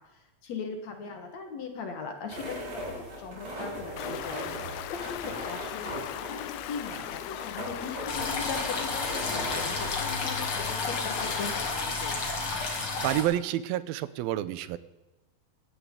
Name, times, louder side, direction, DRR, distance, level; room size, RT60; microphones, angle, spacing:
voice 1, 0.4-2.7 3.2-12.1, left 5 dB, 60° left, 5 dB, 2.2 m, -39 dB
sound 1, 2.3-10.2, equal, 55° right, 7.4 m, -39 dB
Stream, 4.0-11.7, left 13 dB, 85° left, 1.7 m, -38 dB
sound 2, 8.1-13.2, left 3 dB, 40° left, 2.9 m, -31 dB
voice 2, 13.0-14.8, right 13 dB, 90° right, 16 dB, 2.5 m, -29 dB
17.5 x 13.0 x 3.7 m, 1.1 s
omnidirectional pair, 4.2 m